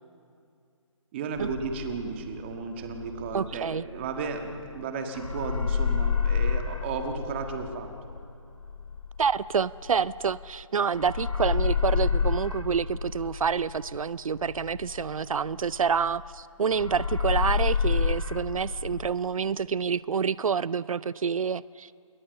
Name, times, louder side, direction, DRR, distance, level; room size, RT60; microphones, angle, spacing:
voice 1, 1.1-7.9, right 5 dB, 20° right, 5 dB, 1.6 m, -34 dB
sound 1, 1.4-4.8 5.1-10.6 10.9-16.4 16.7-19.1, left 6 dB, 85° left, 2.8 m, -29 dB
voice 2, 3.3-3.8 9.2-21.9, right 6 dB, 85° right, 19 dB, 0.5 m, -28 dB
27.5 x 21.5 x 6.6 m, 2.4 s
hypercardioid pair, 165°, 17 cm